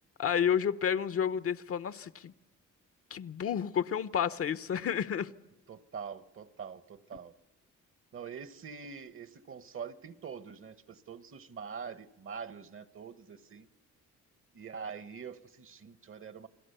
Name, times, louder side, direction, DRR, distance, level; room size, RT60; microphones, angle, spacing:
voice 1, 0.2-2.3 3.1-5.3, left 8 dB, 50° left, 0.8 m, -30 dB
voice 2, 5.7-7.3 8.1-13.7 14.5-16.5, right 6 dB, 45° right, 1.2 m, -44 dB
29.5 x 21.5 x 6.8 m
cardioid pair, 90°, 30 cm